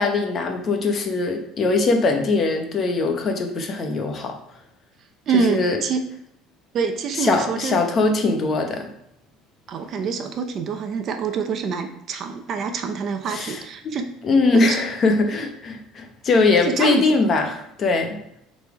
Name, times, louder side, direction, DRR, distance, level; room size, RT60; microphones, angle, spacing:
voice 1, 0.0-4.4 5.3-5.8 7.2-8.9 13.3-13.6 13.8-13.9 14.2-18.2, left 3 dB, 30° left, 1.0 m, -21 dB
voice 2, 5.3-6.0 6.7-7.8 9.7-14.1 14.5-14.8 16.7-17.2, right 5 dB, 40° right, 0.7 m, -25 dB
6.7 x 4.2 x 4.8 m
cardioid pair, 150°, 0 cm